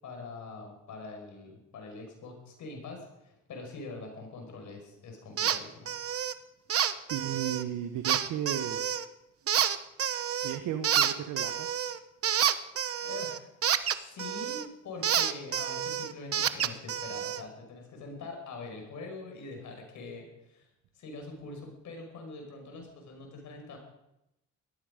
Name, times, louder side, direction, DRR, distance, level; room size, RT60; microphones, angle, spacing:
voice 1, 0.0-5.9 13.0-13.5 13.8-20.7 20.9-23.8, left 3 dB, 70° left, 3 dB, 5.6 m, -44 dB
sound 1, 5.4-5.6 5.9-6.3 6.7-7.6 8.0-9.0 9.5-10.6 10.8-14.7 15.0-17.4, right 9 dB, 50° right, 1.0 m, -29 dB
voice 2, 7.1-8.8 10.4-11.7, right 10 dB, 85° right, 7 dB, 1.2 m, -34 dB
18.0 x 14.0 x 5.2 m, 0.89 s
cardioid pair, 90°, 30 cm